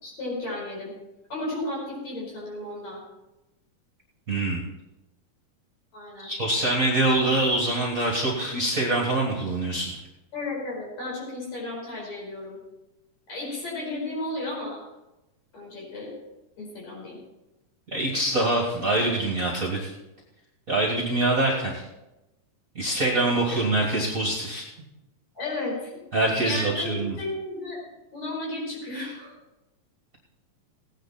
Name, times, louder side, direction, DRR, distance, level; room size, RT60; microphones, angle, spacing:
voice 1, 0.0-0.9 1.3-3.0 5.9-6.3 10.3-12.6 13.3-14.8 15.5-16.1 16.6-17.2 23.5-23.7 25.4-25.9 26.4-27.8 28.1-29.3, left 2 dB, 55° left, -3 dB, 6.1 m, -33 dB
voice 2, 4.3-4.6 6.2-10.0 17.9-19.9 20.7-21.8 22.8-24.6 26.1-27.2, right 2 dB, 30° right, -2 dB, 1.8 m, -24 dB
17.0 x 9.9 x 4.3 m, 0.98 s
omnidirectional pair, 3.8 m